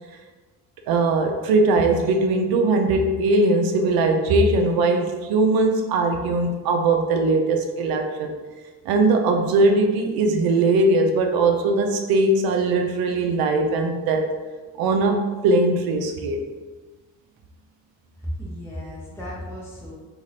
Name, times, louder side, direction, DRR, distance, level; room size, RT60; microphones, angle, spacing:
voice 1, 0.9-8.4 8.9-14.4 14.8-16.4, right 2 dB, 80° right, 5 dB, 0.5 m, -20 dB
voice 2, 18.2-19.9, equal, 5° left, -7 dB, 0.7 m, -34 dB
2.5 x 2.4 x 3.2 m, 1.3 s
cardioid pair, 125°, 36 cm